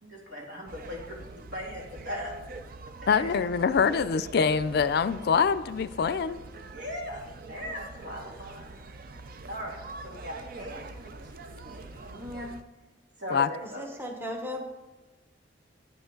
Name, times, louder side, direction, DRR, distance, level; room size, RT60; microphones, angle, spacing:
voice 1, 0.0-2.3 3.1-3.3 6.7-8.7 9.5-9.8 10.0-12.5 13.2-13.8, left 1 dB, 75° right, -2 dB, 2.9 m, -39 dB
sound 1, 0.7-12.6, right 3 dB, 55° right, 0.5 m, -44 dB
voice 2, 3.1-6.4 13.3-13.5, left 6 dB, 60° left, 15 dB, 0.4 m, -24 dB
voice 3, 13.8-14.6, left 1 dB, 15° right, 2 dB, 1.1 m, -35 dB
9.7 x 9.6 x 3.9 m, 1.2 s
head